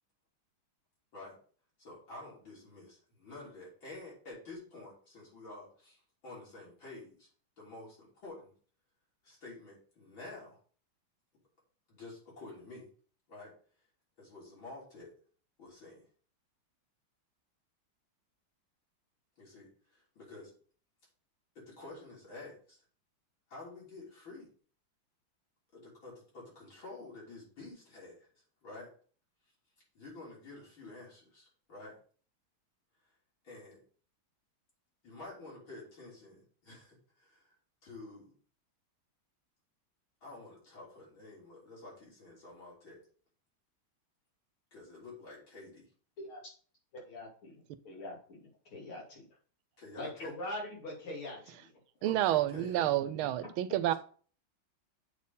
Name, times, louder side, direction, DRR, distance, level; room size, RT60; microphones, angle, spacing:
voice 1, 1.8-7.3 7.6-8.5 9.2-10.6 11.9-12.9 13.3-13.5 14.2-15.1 15.6-16.0 19.4-19.7 20.2-20.5 21.6-22.8 23.5-24.5 25.7-28.3 28.6-28.9 29.9-31.9 33.4-33.8 35.0-37.5 37.8-38.3 40.2-43.0 44.7-45.9 49.8-50.3 52.0-52.7, left 2 dB, 70° left, 4.4 m, -49 dB
voice 2, 47.0-48.4 48.7-49.2 50.0-51.7, left 1 dB, 85° left, 3.5 m, -43 dB
voice 3, 52.0-53.9, right 13 dB, 85° right, 1.5 m, -29 dB
8.0 x 4.3 x 5.5 m
omnidirectional pair, 2.3 m